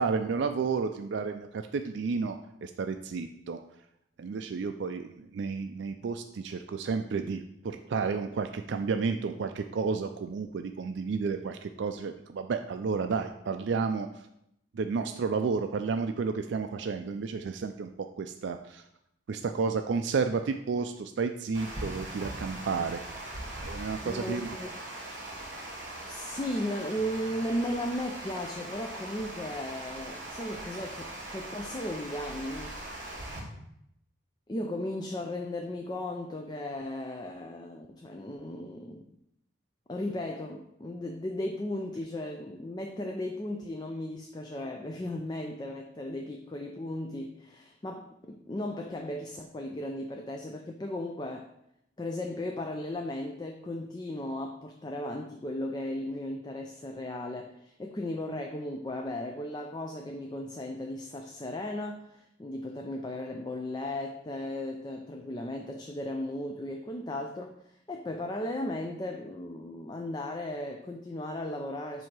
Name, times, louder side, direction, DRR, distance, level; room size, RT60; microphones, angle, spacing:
voice 1, 0.0-3.6 4.2-14.1 14.7-17.9 18.2-18.8 19.3-23.0 23.6-24.6, right 5 dB, 65° right, 7 dB, 0.4 m, -31 dB
Water, 21.5-33.4, right 1 dB, 40° right, 2.3 m, -40 dB
voice 2, 24.0-24.8 26.0-32.8 34.5-39.1 39.9-51.5 52.0-72.1, left 1 dB, 20° left, 4 dB, 0.4 m, -36 dB
7.5 x 2.7 x 6.0 m, 0.78 s
head